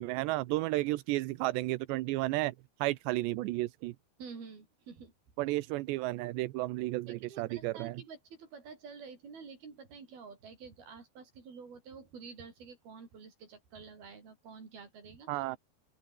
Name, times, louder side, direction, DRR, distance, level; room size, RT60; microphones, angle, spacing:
voice 1, 0.0-4.0 5.4-8.0 15.3-15.6, right 19 dB, 85° right, 3.0 m, -33 dB
voice 2, 4.2-5.1 7.1-15.4, right 5 dB, 60° right, 7.6 m, -49 dB
open air
omnidirectional pair, 5.0 m